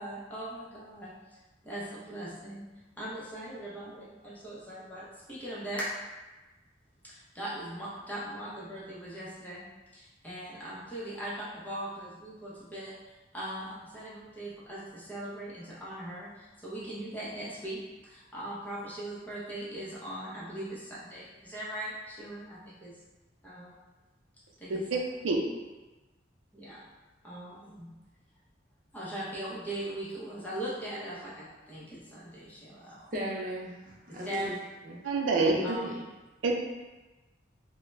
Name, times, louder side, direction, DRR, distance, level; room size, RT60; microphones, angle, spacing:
voice 1, 0.0-1.4 1.6-2.6 3.0-5.9 7.0-23.0 23.4-23.8 24.6-24.8 26.5-26.9 27.2-27.9 28.9-33.1 34.2-34.5 35.6-35.9, right 1 dB, 10° left, -8 dB, 0.7 m, -40 dB
voice 2, 33.1-34.5 34.8-35.0 35.6-36.0, equal, 45° right, -3 dB, 0.6 m, -37 dB
voice 3, 35.0-35.8 36.4-36.5, right 3 dB, 85° right, 0 dB, 0.5 m, -26 dB
3.6 x 2.1 x 3.1 m, 1.1 s
head